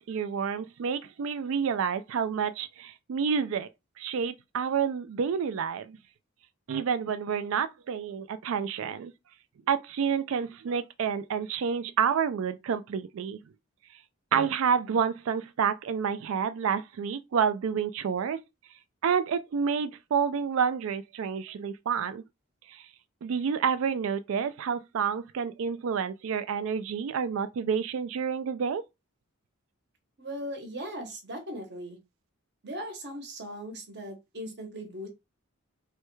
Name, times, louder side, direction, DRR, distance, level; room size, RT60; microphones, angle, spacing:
voice 1, 0.0-3.7 4.0-6.0 6.7-9.1 9.7-13.4 14.3-18.4 19.0-22.2 22.7-22.8 23.2-28.8, right 7 dB, 65° right, 0.3 m, -29 dB
voice 2, 30.2-32.0 32.6-35.1, equal, 50° right, 0.9 m, -38 dB
3.2 x 2.2 x 3.1 m
head